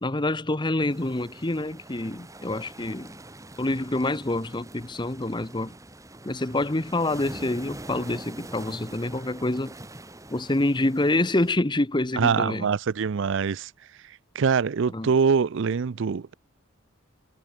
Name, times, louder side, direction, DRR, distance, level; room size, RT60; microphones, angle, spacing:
voice 1, 0.0-3.2 3.6-5.7 6.2-9.7 10.3-12.7 14.9-15.1, left 2 dB, 20° left, 1.0 m, -27 dB
sound 1, 0.9-11.5, right 1 dB, 15° right, 2.1 m, -44 dB
voice 2, 12.2-13.7 14.0-16.3, right 6 dB, 60° right, 0.5 m, -24 dB
head